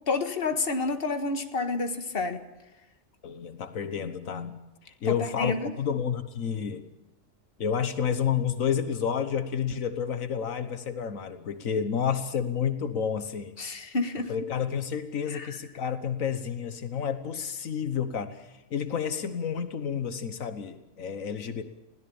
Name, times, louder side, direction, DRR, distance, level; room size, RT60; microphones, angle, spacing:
voice 1, 0.1-2.4 5.1-5.7 13.6-14.3 15.3-15.5, left 3 dB, 45° left, 7 dB, 1.9 m, -29 dB
voice 2, 3.2-6.8 7.6-13.5 14.3-21.6, left 7 dB, 85° left, 10 dB, 1.6 m, -30 dB
22.0 x 17.0 x 7.1 m, 1.1 s
omnidirectional pair, 1.4 m